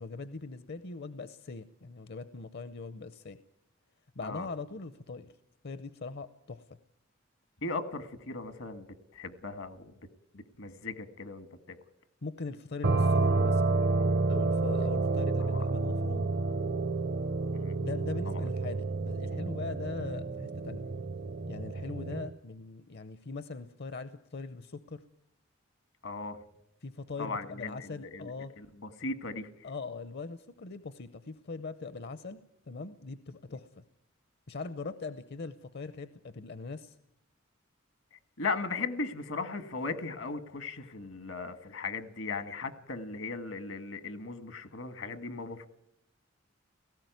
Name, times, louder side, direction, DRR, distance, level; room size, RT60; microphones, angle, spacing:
voice 1, 0.0-3.4 4.2-5.3 5.6-6.6 12.2-13.6 14.3-16.3 17.8-20.8 21.5-25.0 26.8-28.5 29.6-33.8 34.5-37.0, left 4 dB, 55° left, 12 dB, 0.7 m, -41 dB
voice 2, 7.6-8.9 9.1-9.9 10.3-11.8 15.4-15.7 17.5-17.8 18.2-18.4 26.0-26.4 27.2-29.5 38.4-45.7, left 3 dB, 80° left, 10 dB, 1.6 m, -37 dB
sound 1, 12.8-22.3, right 3 dB, 55° right, 0.8 m, -29 dB
18.0 x 16.0 x 9.3 m, 0.81 s
head